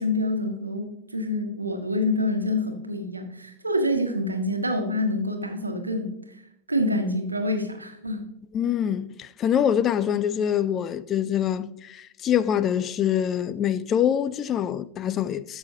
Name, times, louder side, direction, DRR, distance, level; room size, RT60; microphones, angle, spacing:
voice 1, 0.0-6.4 6.7-8.3, left 1 dB, 80° right, 1.1 m, -27 dB
voice 2, 8.5-15.6, left 9 dB, 30° left, 0.4 m, -25 dB
13.0 x 6.2 x 2.8 m
figure-of-eight pair, 90°, 0 cm